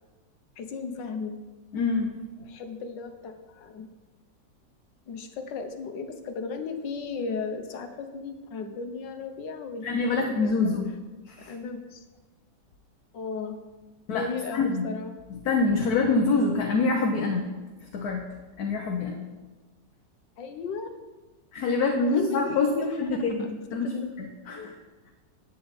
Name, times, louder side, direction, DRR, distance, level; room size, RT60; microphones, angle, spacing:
voice 1, 0.6-1.4 2.4-3.9 5.1-9.9 10.1-10.7 11.5-12.0 13.1-13.6 14.1-15.1 20.4-20.9 21.8-21.9 22.1-23.5 23.8-24.1 24.6-24.7, left 5 dB, 80° left, 7 dB, 1.6 m, -36 dB
voice 2, 1.7-2.1 9.8-10.9 11.3-11.5 14.1-14.9 15.3-17.5 17.9-18.3 18.6-19.2 21.5-24.7, left 3 dB, 65° left, 3 dB, 1.3 m, -26 dB
11.0 x 8.4 x 4.1 m, 1.2 s
omnidirectional pair, 1.9 m